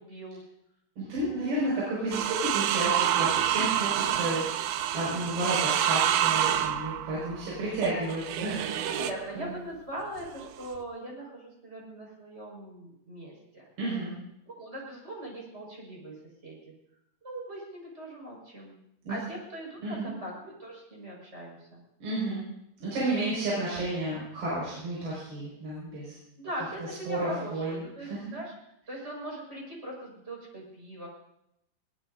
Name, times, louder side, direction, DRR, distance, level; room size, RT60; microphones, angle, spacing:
voice 1, 0.1-0.4 3.6-3.8 7.9-8.1 8.8-13.6 14.5-16.1 16.4-16.7 17.2-18.8 19.1-21.8 26.4-28.5 28.9-31.1, right 1 dB, 15° right, -2 dB, 5.3 m, -40 dB
voice 2, 1.0-9.0 9.4-9.5 13.8-14.1 19.0-19.2 19.8-20.1 22.0-22.4 22.8-26.2 27.1-28.2, right 1 dB, 70° right, -7 dB, 7.2 m, -32 dB
sound 1, 2.1-9.2 10.2-10.8, right 11 dB, 90° right, 1.8 m, -28 dB
21.0 x 19.5 x 2.6 m, 0.81 s
omnidirectional pair, 4.7 m